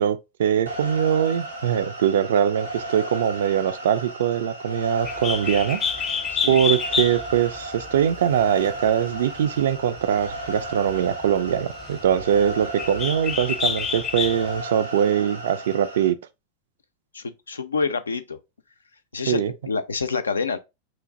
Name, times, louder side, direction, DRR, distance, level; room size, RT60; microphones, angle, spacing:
voice 1, 0.0-5.8 6.5-16.2 19.3-19.5, right 9 dB, 60° right, 0.3 m, -22 dB
sound 1, 0.7-16.1, right 1 dB, 85° right, 1.0 m, -36 dB
Bird, 5.0-14.6, left 6 dB, 25° left, 0.6 m, -30 dB
voice 2, 6.3-6.6 17.1-18.4 19.1-20.6, left 4 dB, 75° left, 0.4 m, -27 dB
3.1 x 2.5 x 3.6 m
figure-of-eight pair, 90°, 0 cm